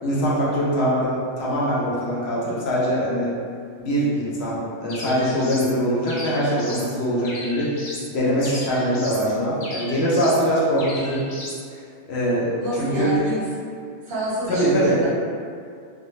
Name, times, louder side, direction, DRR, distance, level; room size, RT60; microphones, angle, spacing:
voice 1, 0.0-3.3 3.8-7.7 8.1-11.2 12.1-13.1 14.5-15.1, equal, 65° left, -6 dB, 0.8 m, -22 dB
sound 1, 4.9-5.7 6.1-6.9 7.2-8.1 8.4-9.3 9.6-10.4 10.8-11.6, left 1 dB, 85° left, 0.3 m, -36 dB
voice 2, 12.6-13.4 14.1-15.1, right 1 dB, 60° right, -7 dB, 0.7 m, -27 dB
2.2 x 2.0 x 3.0 m, 2.3 s
omnidirectional pair, 1.3 m